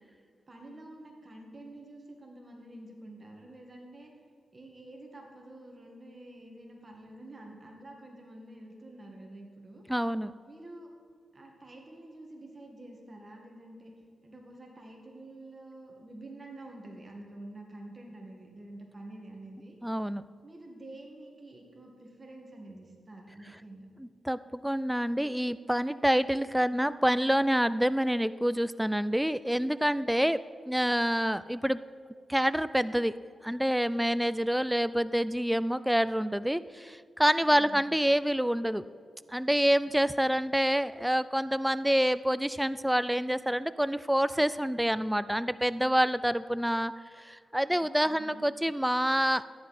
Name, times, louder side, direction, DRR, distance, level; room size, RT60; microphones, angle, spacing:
voice 1, 0.5-4.1 4.5-9.8 10.5-10.9 11.3-13.9 14.2-19.8 20.4-23.9 37.5-37.9 48.0-48.4, right 1 dB, 30° right, 1 dB, 2.0 m, -48 dB
voice 2, 9.9-10.3 19.8-20.2 24.0-30.4 30.7-31.8 32.3-33.1 33.4-38.8 39.3-46.9 47.2-49.4, equal, 5° right, 15 dB, 0.3 m, -27 dB
13.5 x 10.0 x 4.3 m, 2.1 s
cardioid pair, 90°, 0 cm